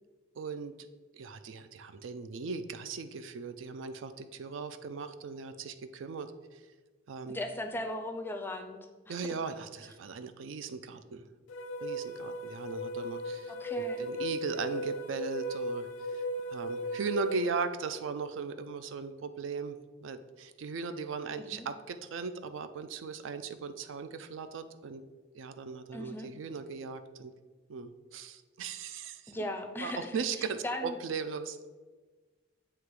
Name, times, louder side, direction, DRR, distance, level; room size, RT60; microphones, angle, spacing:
voice 1, 0.4-0.7 1.1-6.6 7.1-7.4 9.1-11.3 11.8-16.2 16.5-25.0 25.3-27.3 27.7-29.5 29.8-31.6, right 5 dB, 70° right, 11 dB, 0.4 m, -38 dB
voice 2, 7.3-8.8 9.1-9.4 13.5-14.1 21.4-21.7 25.9-26.3 29.3-31.0, left 1 dB, 10° left, 6 dB, 0.4 m, -38 dB
sound 1, 11.5-17.5, equal, 75° left, 0.5 m, -36 dB
7.8 x 2.8 x 4.7 m, 1.3 s
head